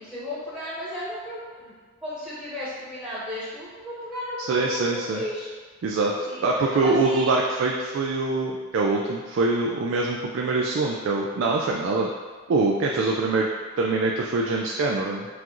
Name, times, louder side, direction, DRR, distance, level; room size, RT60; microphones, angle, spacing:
voice 1, 0.0-1.7 2.0-5.5 6.3-7.3, left 1 dB, 5° right, -11 dB, 1.1 m, -34 dB
voice 2, 4.5-5.2 5.8-12.1 12.5-13.5 13.8-15.3, right 3 dB, 70° right, -1 dB, 0.3 m, -24 dB
5.8 x 2.5 x 3.0 m, 1.4 s
head